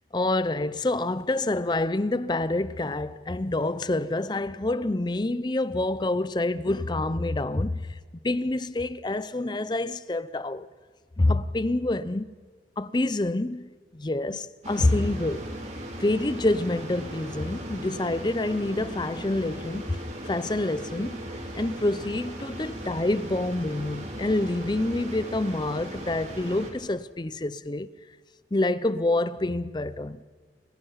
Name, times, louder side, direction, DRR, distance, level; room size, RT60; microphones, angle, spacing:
voice 1, 0.1-10.7 11.2-12.3 12.8-15.5 16.0-20.0 20.2-21.2 21.5-27.9 28.5-30.2, left 2 dB, 25° left, 0.5 m, -27 dB
sound 1, 14.6-26.7, right 1 dB, 40° right, 3.9 m, -38 dB
29.0 x 17.0 x 5.6 m
head